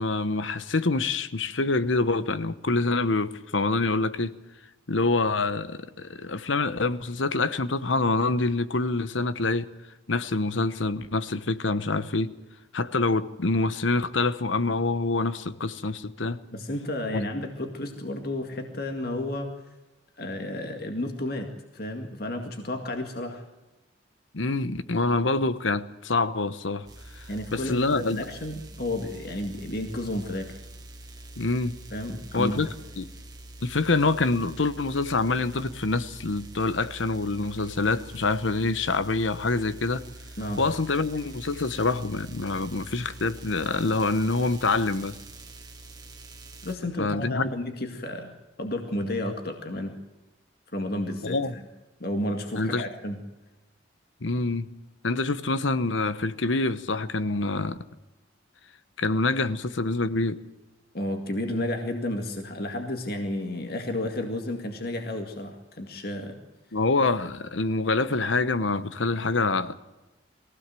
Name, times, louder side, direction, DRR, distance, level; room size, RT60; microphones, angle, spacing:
voice 1, 0.0-4.4 4.9-9.7 10.1-12.3 12.7-16.4 17.1-17.2 24.3-26.9 27.2-27.3 27.5-28.2 31.4-31.8 32.3-32.7 33.0-33.1 33.6-40.0 40.6-45.2 47.0-47.5 51.2-51.5 52.6-52.8 54.2-54.7 55.0-57.8 59.0-60.4 66.7-69.7, left 3 dB, 85° left, 1.0 m, -26 dB
voice 2, 16.5-19.5 20.2-21.5 21.7-23.4 27.3-30.6 31.9-32.6 40.4-40.6 46.6-49.9 50.7-51.7 52.0-53.2 60.9-66.4, left 1 dB, 55° left, 2.1 m, -32 dB
sound 1, 26.9-46.7, right 2 dB, 20° right, 2.3 m, -45 dB
22.5 x 16.5 x 7.7 m
head